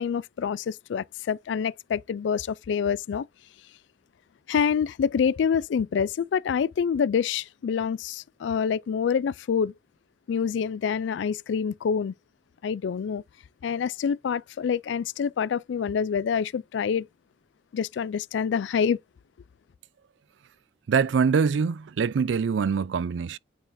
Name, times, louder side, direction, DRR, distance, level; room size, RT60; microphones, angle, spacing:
voice 1, 0.0-3.3 4.5-9.7 10.3-12.1 12.6-13.2 13.6-17.1 17.7-19.0, left 7 dB, 70° left, 0.3 m, -26 dB
voice 2, 20.9-23.4, right 6 dB, 70° right, 0.4 m, -24 dB
8.9 x 4.5 x 2.6 m
head